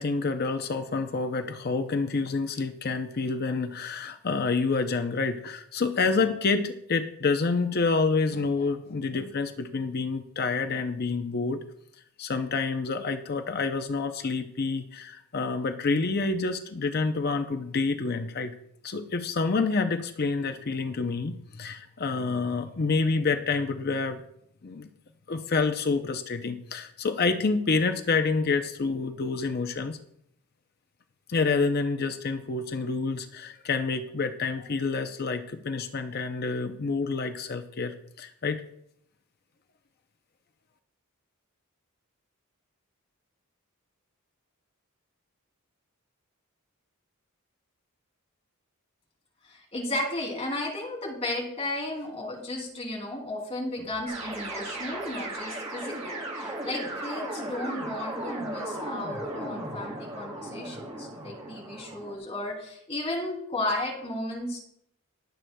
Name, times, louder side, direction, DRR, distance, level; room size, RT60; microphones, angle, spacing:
voice 1, 0.0-11.6 12.2-18.5 18.8-24.2 24.6-24.9 25.3-30.0 31.3-38.6, left 4 dB, 45° left, 8 dB, 0.6 m, -28 dB
voice 2, 49.4-64.6, left 1 dB, 30° left, 0 dB, 2.8 m, -34 dB
sound 1, 54.1-62.2, right 1 dB, 30° right, 3.7 m, -36 dB
22.0 x 7.7 x 2.2 m, 0.73 s
head